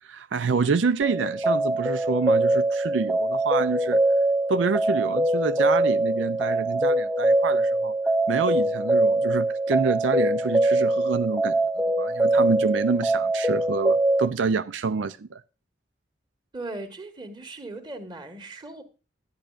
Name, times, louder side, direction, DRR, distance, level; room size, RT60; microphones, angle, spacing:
voice 1, 0.0-4.0 4.5-7.9 8.3-15.4, right 4 dB, 85° right, 0.5 m, -27 dB
sound 1, 1.0-14.3, right 1 dB, 10° right, 0.4 m, -23 dB
voice 2, 16.5-18.8, right 2 dB, 25° right, 1.8 m, -38 dB
12.0 x 10.5 x 2.5 m
head